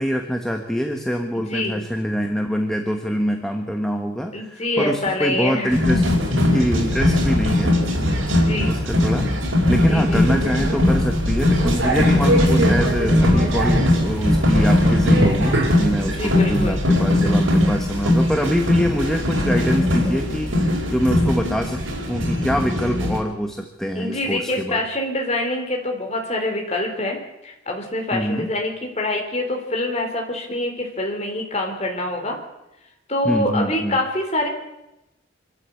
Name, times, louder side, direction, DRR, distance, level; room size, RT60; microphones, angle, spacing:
voice 1, 0.0-6.0 6.5-7.8 8.7-9.3 9.7-24.8 28.1-28.5 33.2-34.0, equal, ahead, 4 dB, 1.2 m, -24 dB
voice 2, 1.5-1.8 4.3-5.8 6.5-6.7 8.4-8.8 9.8-10.3 16.1-16.8 22.2-22.3 23.9-32.4 33.1-34.5, left 1 dB, 35° left, 2 dB, 4.0 m, -25 dB
sound 1, 5.7-23.2, left 1 dB, 85° right, 5.0 m, -20 dB
sound 2, 6.5-21.5, equal, 60° right, 5.8 m, -28 dB
25.5 x 13.0 x 8.4 m, 0.93 s
head